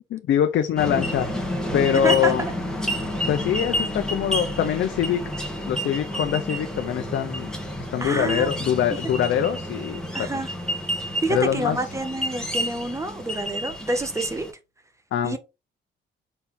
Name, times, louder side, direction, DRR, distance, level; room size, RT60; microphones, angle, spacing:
voice 1, 0.1-1.3 1.7-2.4 3.3-5.2 5.7-7.5 7.9-10.3 11.3-11.8 15.1-15.4, left 9 dB, 70° left, 0.9 m, -23 dB
sound 1, 0.8-14.5, equal, 5° left, 2.2 m, -30 dB
voice 2, 8.0-8.5 10.1-10.5 11.2-14.5 15.2-15.4, right 2 dB, 15° right, 1.5 m, -27 dB
5.6 x 4.3 x 4.0 m
cardioid pair, 90°, 20 cm